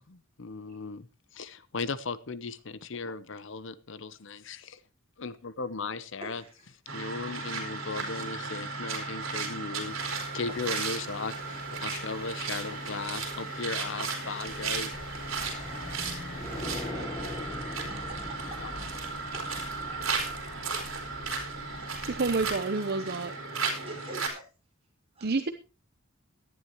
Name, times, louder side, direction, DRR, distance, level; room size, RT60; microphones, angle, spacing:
voice 1, 0.1-1.1 1.3-4.8 5.2-6.4 6.9-10.0 10.3-14.9 18.6-18.7 19.5-19.7, left 4 dB, 60° left, 0.8 m, -37 dB
voice 2, 6.2-6.7 15.4-15.6 17.8-19.5 19.8-20.2 20.5-21.1 21.8-22.2 23.8-24.5 25.1-25.3, right 2 dB, 30° right, 5.0 m, -47 dB
sound 1, 6.9-24.3, right 4 dB, 75° right, 4.1 m, -35 dB
sound 2, 9.8-16.9, left 2 dB, 45° left, 3.2 m, -51 dB
sound 3, 14.4-22.5, left 1 dB, 15° left, 6.6 m, -42 dB
voice 3, 22.1-23.3 25.2-25.5, right 3 dB, 50° right, 0.8 m, -29 dB
17.5 x 11.0 x 3.1 m
head